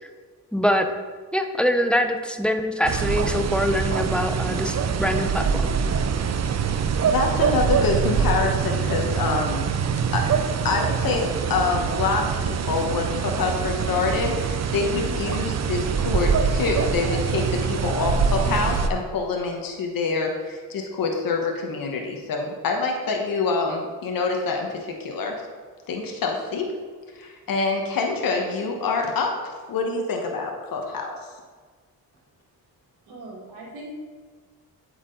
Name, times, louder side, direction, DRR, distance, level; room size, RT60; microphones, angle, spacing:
voice 1, 0.5-0.9 1.3-5.7, equal, 5° left, 6 dB, 0.7 m, -24 dB
sound 1, 2.9-18.9, right 6 dB, 45° right, 0.6 m, -24 dB
voice 2, 6.7-9.7 10.1-10.2 10.6-25.3 25.9-26.7 27.1-31.1, left 4 dB, 65° left, 2 dB, 1.2 m, -26 dB
voice 3, 33.1-33.9, right 2 dB, 85° right, -3 dB, 2.0 m, -40 dB
8.2 x 4.9 x 3.9 m, 1.5 s
cardioid pair, 65°, 37 cm